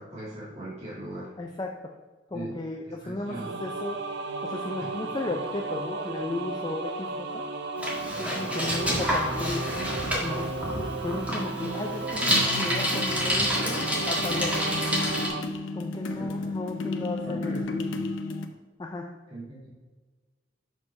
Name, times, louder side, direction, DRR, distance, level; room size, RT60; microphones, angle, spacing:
voice 1, 0.0-1.3 2.3-2.6 3.0-3.5 4.8-5.0 5.3-5.4 8.1-8.7 16.0-16.6 17.2-18.1 19.3-19.7, right 1 dB, 35° right, -7 dB, 2.4 m, -40 dB
voice 2, 1.4-1.9 2.3-4.0 4.4-7.4 8.2-9.7 10.2-10.5 10.8-14.9 15.7-17.6 18.8-19.1, left 2 dB, 25° left, 2 dB, 0.5 m, -35 dB
sound 1, 3.2-15.4, right 3 dB, 65° right, 0.7 m, -34 dB
Bicycle, 7.8-15.3, equal, 10° right, 1.6 m, -28 dB
sound 2, 12.8-18.5, left 2 dB, 90° left, 0.7 m, -33 dB
6.2 x 5.5 x 5.2 m, 1.3 s
head